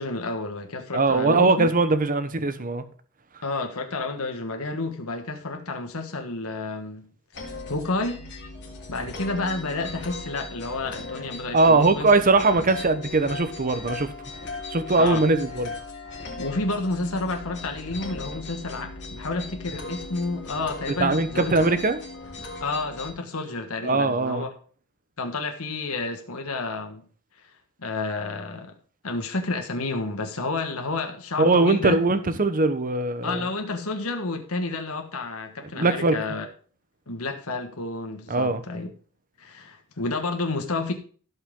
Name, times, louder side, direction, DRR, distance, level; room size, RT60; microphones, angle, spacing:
voice 1, 0.0-1.7 3.4-7.1 7.7-8.2 8.9-12.1 12.5-12.6 15.0-15.2 16.4-21.5 22.6-24.5 25.2-27.0 27.8-28.7 29.0-32.0 33.2-36.4 37.1-38.9 39.4-40.9, left 3 dB, 75° left, 1.6 m, -30 dB
voice 2, 0.9-2.8 11.5-14.1 14.7-15.7 21.0-22.0 23.8-24.5 31.4-33.4 35.7-36.2 38.3-38.6, right 3 dB, 40° right, 1.0 m, -21 dB
sound 1, 7.3-23.1, left 3 dB, 55° left, 3.6 m, -38 dB
16.0 x 5.7 x 3.8 m
head